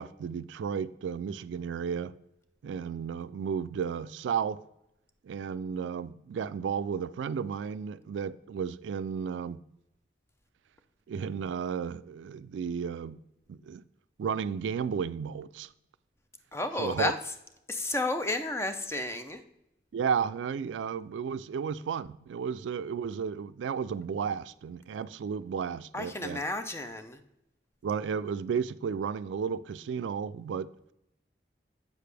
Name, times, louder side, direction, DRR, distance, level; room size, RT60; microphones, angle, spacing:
voice 1, 0.0-2.2 2.6-4.6 5.2-9.6 11.1-13.2 13.5-13.8 14.2-15.7 16.8-17.1 19.9-26.4 27.8-30.7, right 6 dB, 90° right, 0.3 m, -33 dB
voice 2, 16.5-17.2 17.7-19.4 25.9-27.2, left 2 dB, 15° left, 0.5 m, -32 dB
8.2 x 6.7 x 3.3 m
head